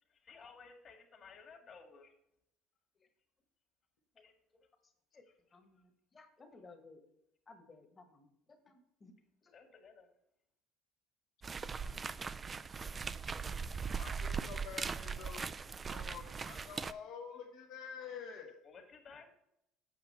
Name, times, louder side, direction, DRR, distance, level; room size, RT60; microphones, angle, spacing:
voice 1, 0.1-2.1 4.2-4.3 9.5-10.1 18.6-19.3, left 5 dB, 45° left, 4 dB, 1.7 m, -56 dB
voice 2, 4.6-5.2 5.5-7.0 7.4-9.1 9.4-9.5, left 3 dB, 25° left, 6 dB, 1.3 m, -59 dB
sound 1, 11.4-16.9, right 5 dB, 25° right, 0.3 m, -40 dB
voice 3, 14.0-15.4 15.9-18.6, left 6 dB, 70° left, -4 dB, 1.2 m, -48 dB
7.4 x 5.6 x 4.2 m, 0.77 s
supercardioid pair, 100°, 0 cm